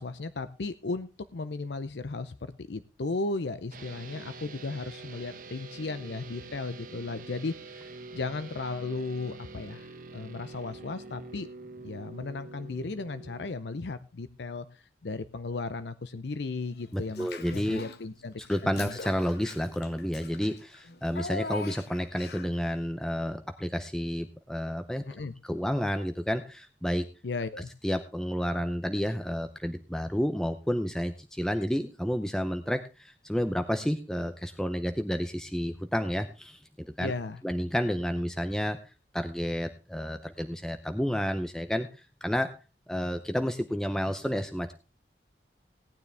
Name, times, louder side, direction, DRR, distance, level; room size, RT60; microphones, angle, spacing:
voice 1, 0.0-11.5 11.8-18.9 25.1-25.3 27.2-27.7 37.0-37.4, left 3 dB, 80° left, 12 dB, 0.6 m, -36 dB
sound 1, 3.7-13.5, right 3 dB, 50° right, 1.1 m, -46 dB
voice 2, 16.9-17.8 18.4-25.0 25.4-27.1 27.8-37.1 37.4-42.6 42.9-44.7, equal, 5° left, 7 dB, 0.6 m, -30 dB
Child speech kid speaking / Bathtub (filling or washing), 17.1-18.0 18.4-22.6, left 3 dB, 65° left, 1.0 m, -41 dB
18.0 x 9.5 x 3.4 m, 0.30 s
head